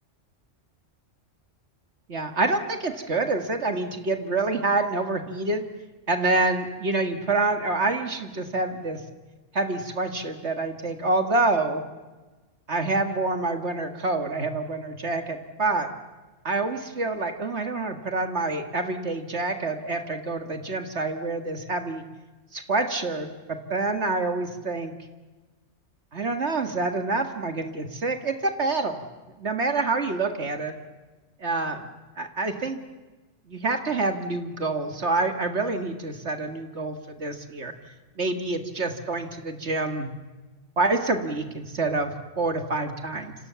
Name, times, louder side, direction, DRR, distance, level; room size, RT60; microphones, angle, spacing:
voice 1, 2.1-5.6 6.1-9.0 9.5-11.8 12.7-15.9 16.4-22.0 22.5-24.9 26.1-29.0 29.4-30.8 31.4-31.8 32.2-32.8 33.5-37.7 38.2-40.1 40.8-43.4, right 3 dB, 65° right, 6 dB, 2.2 m, -27 dB
29.0 x 27.0 x 7.0 m, 1.2 s
omnidirectional pair, 1.2 m